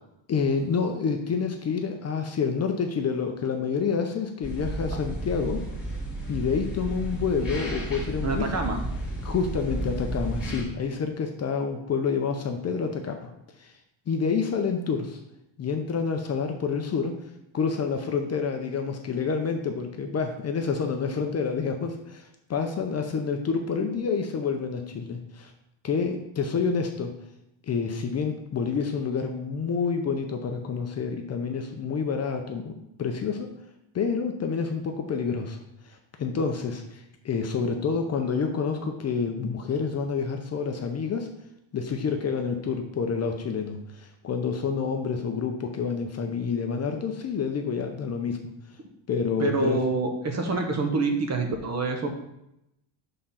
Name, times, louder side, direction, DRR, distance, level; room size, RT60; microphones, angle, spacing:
voice 1, 0.3-5.6 6.3-8.5 9.2-13.3 13.6-13.7 14.1-15.2 15.6-17.1 17.5-25.5 25.8-27.1 27.6-33.5 33.9-35.6 35.8-41.3 41.7-48.5 49.1-49.8, left 5 dB, 35° left, 4 dB, 0.7 m, -28 dB
sound 1, 4.4-10.6, right 1 dB, ahead, 2.2 m, -32 dB
voice 2, 8.2-8.8 49.4-52.1, right 3 dB, 35° right, 4 dB, 1.1 m, -26 dB
6.7 x 3.8 x 5.7 m, 0.82 s
cardioid pair, 155°, 47 cm